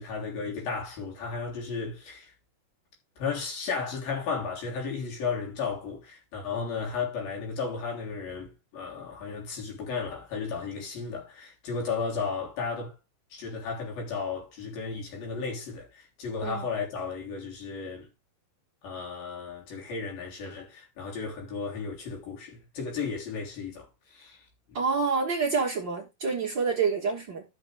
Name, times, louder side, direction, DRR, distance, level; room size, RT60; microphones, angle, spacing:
voice 1, 0.0-2.3 3.2-12.9 13.3-18.1 18.8-24.8, left 5 dB, 70° left, 4.9 m, -34 dB
voice 2, 24.7-27.4, right 5 dB, 60° right, 1.2 m, -27 dB
11.5 x 6.6 x 3.3 m
omnidirectional pair, 4.3 m